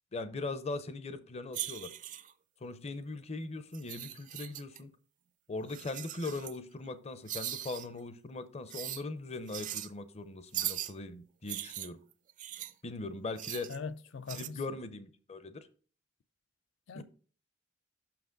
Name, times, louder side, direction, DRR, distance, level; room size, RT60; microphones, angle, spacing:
voice 1, 0.1-1.9 2.6-4.9 5.5-12.0 12.8-13.7 14.4-15.7 17.0-17.1, left 3 dB, 35° left, 0.6 m, -40 dB
sound 1, 1.5-2.3 3.7-4.8 5.7-6.6 7.3-7.9 8.7-9.0 9.5-9.9 10.5-10.9 11.5-12.7 13.4-13.8 14.3-14.5, right 12 dB, 45° right, 0.4 m, -39 dB
voice 2, 13.7-14.6 16.9-17.0, left 5 dB, 75° left, 0.5 m, -41 dB
5.9 x 5.9 x 3.8 m
head